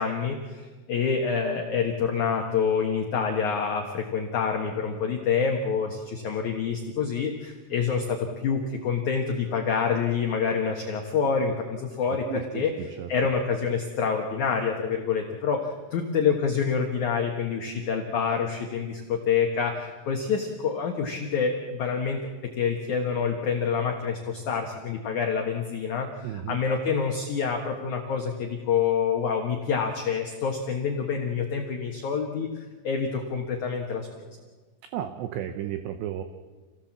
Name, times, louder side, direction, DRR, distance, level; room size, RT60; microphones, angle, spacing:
voice 1, 0.0-12.7 13.1-34.4, left 6 dB, 65° left, 2 dB, 1.9 m, -27 dB
voice 2, 12.3-12.6 13.0-13.1 26.2-26.6 34.9-36.2, right 10 dB, 75° right, 8 dB, 2.7 m, -33 dB
28.0 x 17.5 x 7.4 m, 1.4 s
omnidirectional pair, 5.7 m